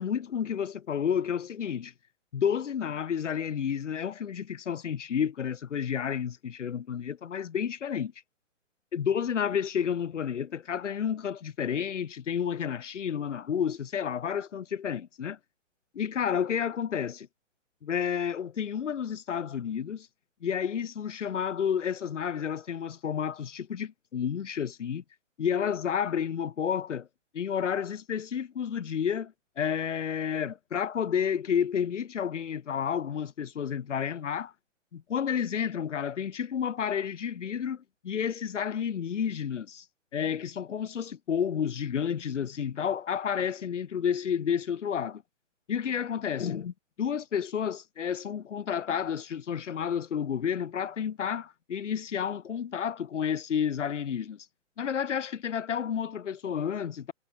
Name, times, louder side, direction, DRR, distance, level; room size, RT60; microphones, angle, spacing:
voice 1, 0.0-1.9 2.3-8.1 8.9-15.4 15.9-17.3 17.8-20.1 20.4-25.0 25.4-27.1 27.3-34.5 34.9-39.8 40.1-45.2 45.7-54.5 54.8-57.1, left 8 dB, 65° left, 4.8 m, -31 dB
hypercardioid pair, 165°, 39 cm